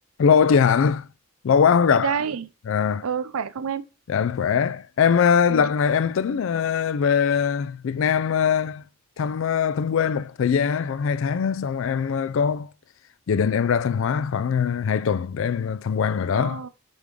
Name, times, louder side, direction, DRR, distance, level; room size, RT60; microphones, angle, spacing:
voice 1, 0.2-1.1 1.4-2.1 2.7-3.0 4.1-8.8 9.2-12.7 13.3-16.6, left 6 dB, 60° left, 0.3 m, -21 dB
voice 2, 1.9-2.5 3.0-3.8 5.5-5.7 16.3-16.7, right 7 dB, 80° right, 0.5 m, -28 dB
8.2 x 3.5 x 3.7 m
head